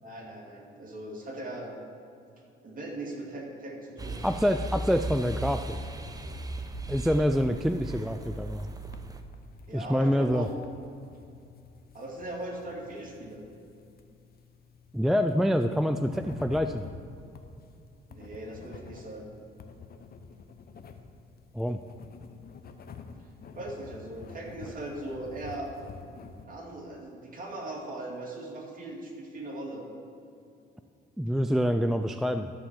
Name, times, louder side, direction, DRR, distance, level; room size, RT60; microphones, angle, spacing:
voice 1, 0.0-1.7 2.6-4.2 9.7-10.5 11.9-13.4 18.1-19.3 23.5-25.7 26.5-29.9, right 1 dB, 45° right, -1 dB, 2.3 m, -39 dB
sound 1, 4.0-9.2, right 1 dB, 20° right, 0.7 m, -37 dB
voice 2, 4.2-5.8 6.9-8.7 9.7-10.5 14.9-16.9 21.5-21.8 31.2-32.5, equal, ahead, 8 dB, 0.3 m, -26 dB
sound 2, 7.8-26.5, left 5 dB, 50° left, 0.8 m, -49 dB
12.5 x 4.2 x 7.4 m, 2.5 s
cardioid pair, 90°, 20 cm